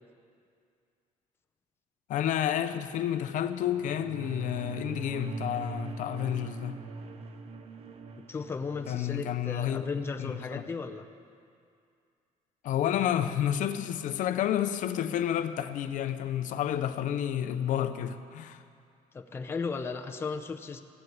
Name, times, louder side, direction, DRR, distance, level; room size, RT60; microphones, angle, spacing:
voice 1, 2.1-6.8 8.9-9.8 10.2-10.6 12.6-18.6, left 10 dB, 65° left, 10 dB, 0.6 m, -30 dB
sound 1, 3.6-10.3, right 3 dB, 45° right, 0.7 m, -42 dB
voice 2, 8.3-11.0 19.1-20.8, left 4 dB, 15° left, 5 dB, 0.5 m, -35 dB
15.0 x 7.9 x 9.4 m, 2.3 s
cardioid pair, 175°, 14 cm